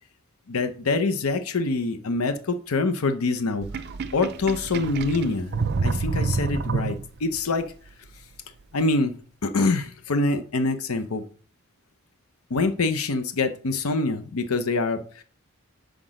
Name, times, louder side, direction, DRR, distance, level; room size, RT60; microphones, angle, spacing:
voice 1, 0.5-3.7 4.1-5.5 5.8-7.7 8.7-9.2 9.4-11.2 12.5-15.2, left 3 dB, 85° left, 0.7 m, -25 dB
Sink (filling or washing), 3.6-7.4, right 4 dB, 50° right, 0.4 m, -28 dB
5.9 x 5.0 x 4.9 m
head